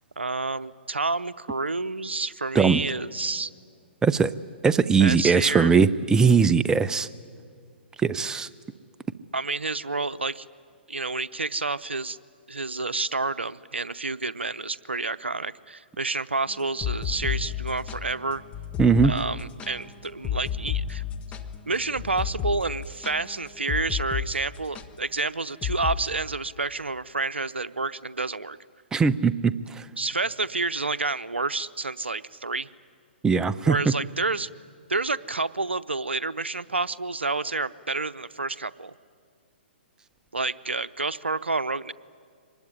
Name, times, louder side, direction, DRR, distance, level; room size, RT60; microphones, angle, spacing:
voice 1, 0.2-3.5 5.0-5.7 9.3-10.5 10.9-12.2 12.5-18.4 19.0-21.0 21.7-28.6 30.0-32.7 33.6-34.5 34.9-38.9 40.3-41.9, right 3 dB, 90° right, 15 dB, 0.7 m, -29 dB
voice 2, 4.0-4.3 4.6-7.1 8.0-8.5 18.8-19.1 28.9-29.5 33.2-33.8, right 5 dB, 10° right, 15 dB, 0.6 m, -20 dB
sound 1, 16.6-24.3 24.5-24.9 25.6-26.0, left 8 dB, 20° left, 1.4 m, -32 dB
24.5 x 20.0 x 10.0 m, 2.2 s
figure-of-eight pair, 125°, 6 cm